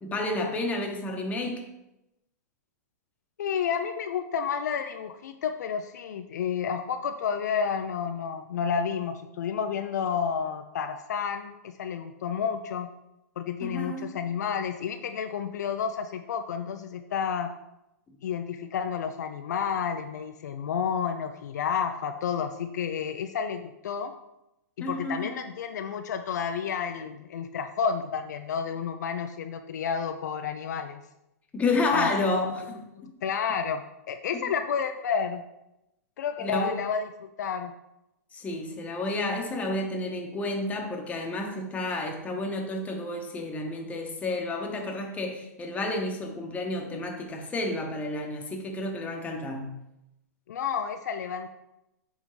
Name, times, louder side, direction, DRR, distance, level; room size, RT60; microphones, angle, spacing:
voice 1, 0.0-1.7 13.6-14.1 24.8-25.3 31.5-33.1 34.3-34.5 36.4-36.8 38.3-49.7, left 2 dB, 15° left, 1 dB, 1.1 m, -30 dB
voice 2, 3.4-12.9 13.4-17.5 18.2-24.1 24.8-31.0 31.9-32.1 32.9-33.8 34.1-35.4 36.2-37.7 50.5-51.5, left 7 dB, 70° left, 7 dB, 0.5 m, -30 dB
9.0 x 3.6 x 3.2 m, 0.88 s
hypercardioid pair, 125°, 9 cm